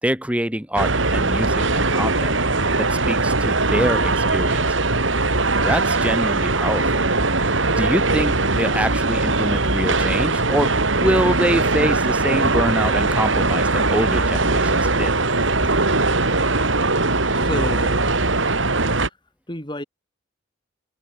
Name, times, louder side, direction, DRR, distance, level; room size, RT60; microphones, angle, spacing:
voice 1, 0.0-2.4 2.8-4.7 5.6-7.0 7.7-15.1, equal, 5° right, 2.3 m, -25 dB
sound 1, 0.8-19.1, right 3 dB, 75° right, 3.4 m, -20 dB
voice 2, 17.2-18.0 19.5-19.8, left 1 dB, 25° left, 6.3 m, -30 dB
open air
head